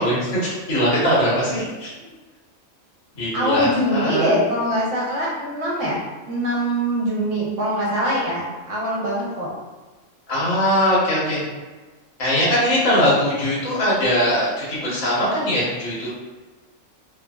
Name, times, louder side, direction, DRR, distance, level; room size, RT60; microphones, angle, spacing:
voice 1, 0.0-1.9 3.2-4.4 10.3-11.4 12.2-16.1, equal, 65° left, -7 dB, 1.4 m, -21 dB
voice 2, 3.3-6.0 6.3-9.5, equal, 65° right, -5 dB, 1.1 m, -23 dB
3.0 x 2.5 x 2.3 m, 1.3 s
omnidirectional pair, 1.4 m